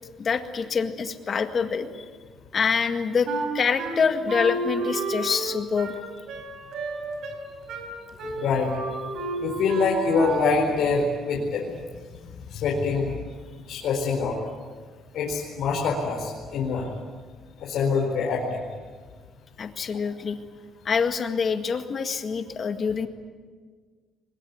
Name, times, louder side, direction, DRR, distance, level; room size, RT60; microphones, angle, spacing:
voice 1, 0.2-2.0 2.5-3.3 3.5-5.9 19.6-20.4 20.9-23.1, left 6 dB, 35° left, 7 dB, 1.9 m, -25 dB
Wind instrument woodwind instrument, 3.3-10.7, right 3 dB, 70° right, 5.0 m, -31 dB
voice 2, 8.4-8.7 9.4-11.7 12.5-13.1 13.7-14.4 15.1-16.9 17.6-18.6, left 4 dB, 70° left, -2 dB, 4.5 m, -25 dB
23.0 x 21.5 x 9.6 m, 1.5 s
cardioid pair, 145°, 0 cm